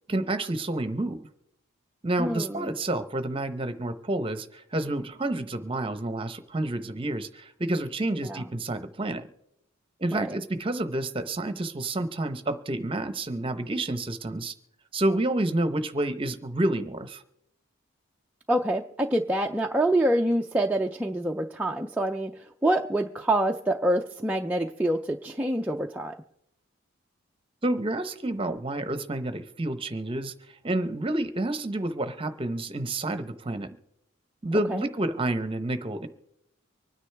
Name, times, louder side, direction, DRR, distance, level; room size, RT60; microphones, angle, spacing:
voice 1, 0.1-1.3 2.0-9.3 10.0-14.5 14.9-17.2 27.6-30.3 30.6-33.7 34.4-36.1, right 1 dB, 25° right, 10 dB, 0.8 m, -29 dB
voice 2, 2.2-2.7 8.2-8.4 10.1-10.4 18.5-26.2 34.7-34.9, right 1 dB, 5° right, 1 dB, 0.4 m, -26 dB
25.0 x 9.8 x 3.4 m, 0.78 s
head